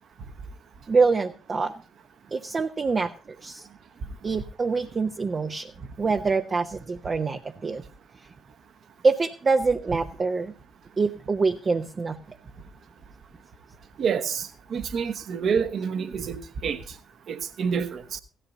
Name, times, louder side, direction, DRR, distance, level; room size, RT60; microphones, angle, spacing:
voice 1, 0.9-1.7 2.3-3.1 3.4-3.7 4.2-5.7 6.0-7.8 9.0-10.5 11.0-12.2, right 4 dB, 35° right, 0.7 m, -25 dB
voice 2, 14.0-16.8 17.3-18.2, right 6 dB, 55° right, 1.1 m, -28 dB
16.5 x 14.0 x 2.6 m
figure-of-eight pair, 45°, 0 cm